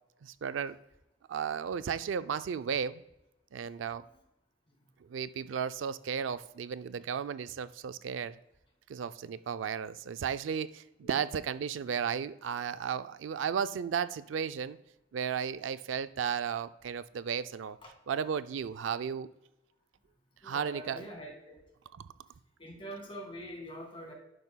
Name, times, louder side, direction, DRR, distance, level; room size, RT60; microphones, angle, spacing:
voice 1, 0.2-0.8 1.3-3.0 3.5-4.0 5.1-8.3 8.9-14.8 15.1-17.8 18.1-19.3 20.4-21.1 21.9-22.0, right 7 dB, 85° right, 13 dB, 0.4 m, -34 dB
voice 2, 20.4-21.6 22.6-24.1, equal, 30° left, 1 dB, 2.0 m, -44 dB
11.0 x 10.0 x 2.2 m, 0.93 s
head